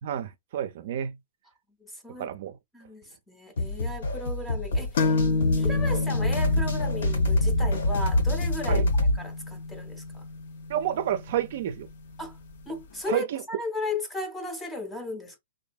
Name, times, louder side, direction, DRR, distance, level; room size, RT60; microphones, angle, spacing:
voice 1, 0.0-1.2 2.1-2.6 8.7-8.9 10.7-11.9 13.1-13.4, right 10 dB, 55° right, 0.4 m, -30 dB
voice 2, 1.8-2.3 2.7-5.2 5.6-8.9 9.2-10.2 12.2-12.4 12.7-15.4, left 2 dB, 5° left, 0.6 m, -35 dB
sound 1, 3.6-9.2, left 1 dB, 80° left, 1.5 m, -26 dB
sound 2, 5.0-12.5, left 3 dB, 65° left, 0.6 m, -30 dB
2.6 x 2.5 x 2.2 m
hypercardioid pair, 150°, 0 cm